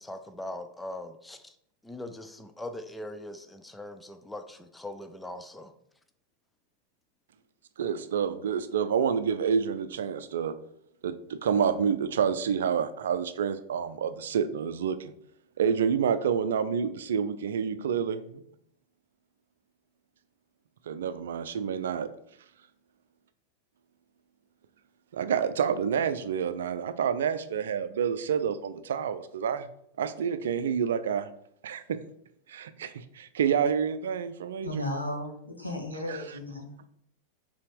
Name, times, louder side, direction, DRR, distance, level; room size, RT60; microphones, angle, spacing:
voice 1, 0.0-1.6 1.8-5.7, left 1 dB, 5° left, 8 dB, 0.6 m, -41 dB
voice 2, 7.8-10.5 11.0-15.1 15.6-18.4 20.9-22.1 25.1-29.7 30.0-31.3 31.6-32.0 32.5-34.9 36.1-36.4, right 7 dB, 60° right, 11 dB, 0.5 m, -28 dB
voice 3, 34.6-36.7, left 1 dB, 85° left, -1 dB, 1.8 m, -34 dB
5.9 x 4.3 x 4.7 m, 0.72 s
figure-of-eight pair, 90°, 0 cm